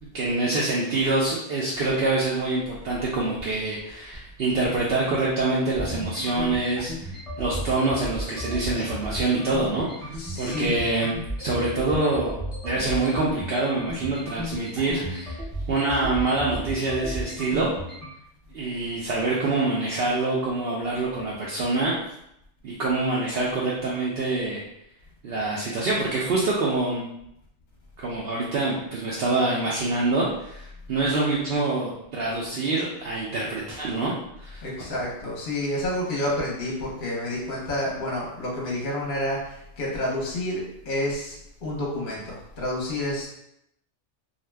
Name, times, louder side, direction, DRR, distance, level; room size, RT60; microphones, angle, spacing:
voice 1, 0.0-7.1 7.4-11.1 11.4-12.4 12.6-15.4 15.7-17.7 18.5-21.9 22.6-24.6 25.2-27.0 28.0-34.1 34.4-34.6, right 2 dB, 65° right, -5 dB, 0.7 m, -25 dB
sound 1, 2.9-18.1, equal, ahead, 0.5 m, -34 dB
voice 2, 10.2-11.0 15.5-15.7 34.6-43.3, left 1 dB, 45° left, -4 dB, 0.8 m, -29 dB
2.6 x 2.2 x 3.3 m, 0.78 s
omnidirectional pair, 1.2 m